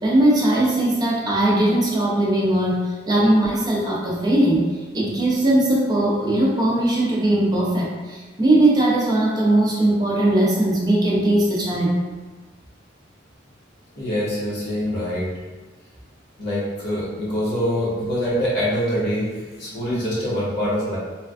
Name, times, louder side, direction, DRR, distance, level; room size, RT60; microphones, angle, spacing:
voice 1, 0.0-4.7 4.9-12.0, right 1 dB, 20° right, -5 dB, 0.6 m, -19 dB
voice 2, 13.9-15.3 16.4-21.0, equal, 60° left, -8 dB, 1.1 m, -24 dB
3.2 x 2.3 x 2.4 m, 1.3 s
head